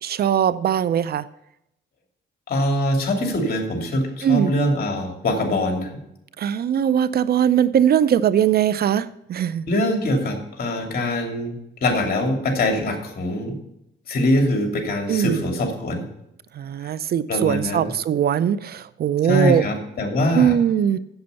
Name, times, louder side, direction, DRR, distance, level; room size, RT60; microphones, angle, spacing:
voice 1, 0.0-1.2 4.2-4.5 6.4-9.6 15.1-15.4 16.6-19.6 20.3-21.0, right 9 dB, 50° right, 0.5 m, -20 dB
voice 2, 2.5-5.9 9.7-13.5 14.1-16.1 16.8-16.9 17.3-17.9 19.2-20.6, left 1 dB, 50° left, 2.8 m, -23 dB
7.9 x 7.9 x 6.8 m
cardioid pair, 90°, 20 cm